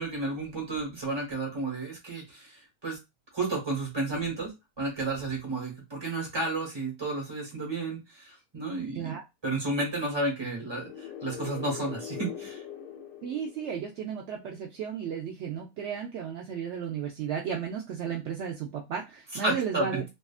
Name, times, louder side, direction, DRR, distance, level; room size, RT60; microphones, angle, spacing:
voice 1, 0.0-3.0 3.3-9.2 9.4-12.6 19.4-20.0, right 2 dB, 20° right, -2 dB, 1.2 m, -32 dB
sound 1, 10.5-14.3, left 9 dB, 65° left, 0.8 m, -42 dB
voice 2, 13.2-20.0, right 7 dB, 70° right, -1 dB, 0.7 m, -34 dB
2.7 x 2.4 x 2.3 m, 0.23 s
omnidirectional pair, 1.7 m